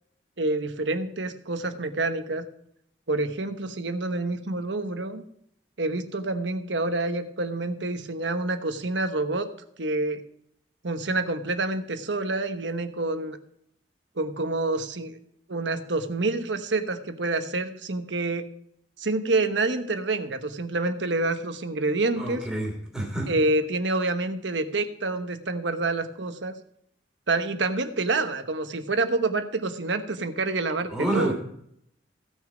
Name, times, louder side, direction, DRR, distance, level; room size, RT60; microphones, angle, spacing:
voice 1, 0.4-2.4 3.1-5.2 5.8-9.5 9.8-10.2 10.8-13.4 14.2-15.2 15.5-18.5 19.0-22.5 23.3-26.6 27.3-31.3, right 2 dB, 85° right, 8 dB, 1.1 m, -27 dB
voice 2, 22.2-23.3 30.9-31.3, right 1 dB, 5° right, -1 dB, 3.0 m, -28 dB
16.0 x 6.4 x 5.1 m, 0.71 s
head